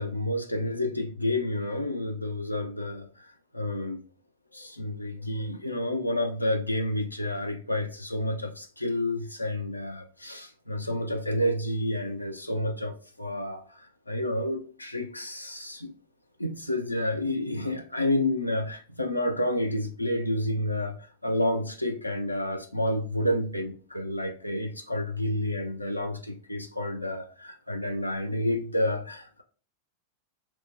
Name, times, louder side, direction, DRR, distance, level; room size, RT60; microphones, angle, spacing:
voice 1, 0.0-3.3 3.5-4.0 4.5-15.9 16.4-29.4, left 1 dB, 85° left, 0.4 m, -30 dB
4.2 x 2.1 x 3.1 m
figure-of-eight pair, 90°, 0 cm